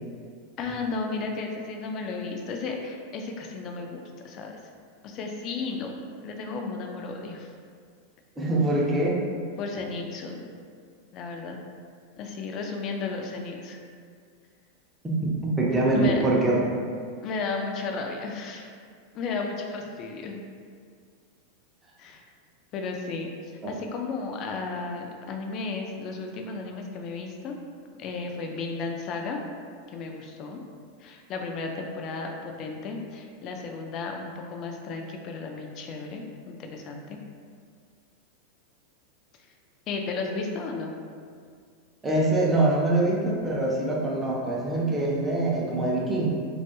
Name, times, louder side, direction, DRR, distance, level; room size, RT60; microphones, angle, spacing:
voice 1, 0.6-4.5 5.0-5.9 6.2-7.5 9.6-10.5 11.1-11.6 12.2-13.8 15.9-16.2 17.2-18.7 19.1-20.4 22.0-22.2 22.7-27.5 28.0-29.4 29.9-30.6 31.0-37.2 39.9-40.9, left 4 dB, 40° left, 2 dB, 0.3 m, -34 dB
voice 2, 8.4-9.2 15.0-16.8 23.6-23.7 42.0-46.3, right 2 dB, 15° right, -4 dB, 0.5 m, -24 dB
2.3 x 2.2 x 2.9 m, 2.1 s
figure-of-eight pair, 90°, 0 cm